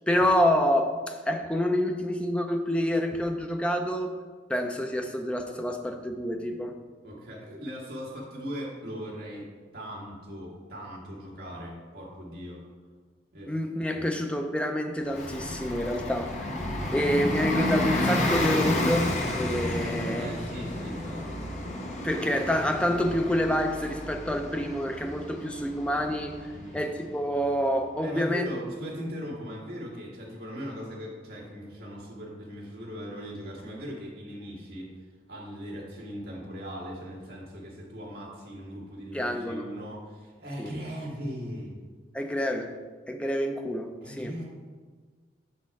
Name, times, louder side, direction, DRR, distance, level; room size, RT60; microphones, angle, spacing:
voice 1, 0.1-4.1 4.5-6.8 13.5-16.5 16.9-20.3 22.0-28.5 39.1-39.7 40.6-40.7 42.1-42.7 43.1-44.4, equal, 5° left, 4 dB, 0.4 m, -28 dB
voice 2, 7.0-9.5 9.7-12.6 13.3-13.5 13.9-14.1 15.9-16.2 19.8-21.4 26.5-26.8 28.0-34.9 35.3-41.7 44.0-44.4, equal, 55° right, -3 dB, 1.7 m, -39 dB
Bus, 15.1-27.4, left 1 dB, 40° left, 0.8 m, -31 dB
6.3 x 4.3 x 4.7 m, 1.5 s
head